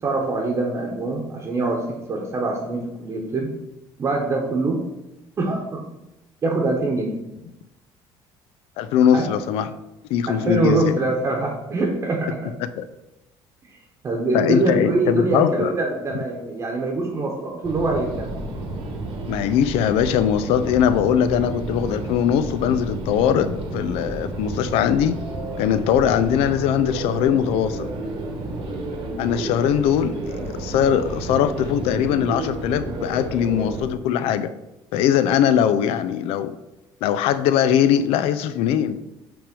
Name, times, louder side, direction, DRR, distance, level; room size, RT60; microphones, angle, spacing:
voice 1, 0.0-3.5 4.0-4.8 5.4-5.8 6.4-7.1 9.1-9.3 10.3-12.5 13.6-13.8 14.0-18.3, right 3 dB, 30° right, -1 dB, 1.0 m, -24 dB
voice 2, 8.8-9.7 10.1-11.0 12.8-12.9 14.3-15.7 19.3-25.2 25.6-27.9 29.2-34.5 34.9-36.5 37.0-39.0, left 9 dB, 85° left, 12 dB, 0.4 m, -21 dB
sound 1, 17.6-33.8, right 2 dB, 70° right, 1.4 m, -31 dB
5.8 x 3.4 x 5.2 m, 0.94 s
cardioid pair, 135°, 10 cm